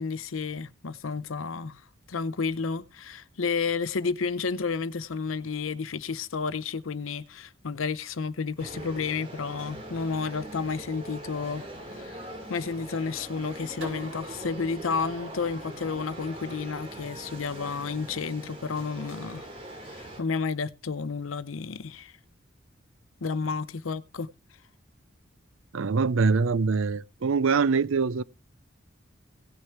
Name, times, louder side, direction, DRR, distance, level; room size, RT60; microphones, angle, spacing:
voice 1, 0.0-1.8 2.1-19.5 19.8-22.1 23.2-24.3, left 5 dB, 90° left, 0.7 m, -31 dB
sound 1, 8.6-20.2, right 1 dB, 30° right, 2.8 m, -42 dB
sound 2, 13.8-16.6, right 2 dB, 60° right, 6.1 m, -45 dB
voice 2, 25.7-28.2, right 4 dB, 80° right, 0.5 m, -24 dB
17.0 x 6.6 x 4.5 m
head